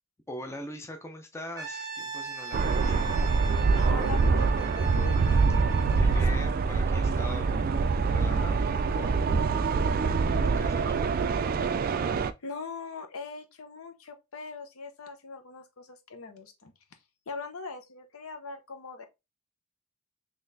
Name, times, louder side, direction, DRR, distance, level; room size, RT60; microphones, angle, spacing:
voice 1, 0.3-3.2 6.0-7.6 8.1-9.3 10.2-11.0, left 1 dB, 10° left, 0.5 m, -42 dB
Brass instrument, 1.6-6.4, right 5 dB, 15° right, 1.0 m, -39 dB
sound 1, 2.5-12.3, right 4 dB, 40° right, 0.3 m, -25 dB
voice 2, 3.7-5.2 6.0-6.4 12.4-16.7 17.3-19.1, left 4 dB, 75° left, 0.8 m, -41 dB
3.9 x 3.0 x 2.6 m
head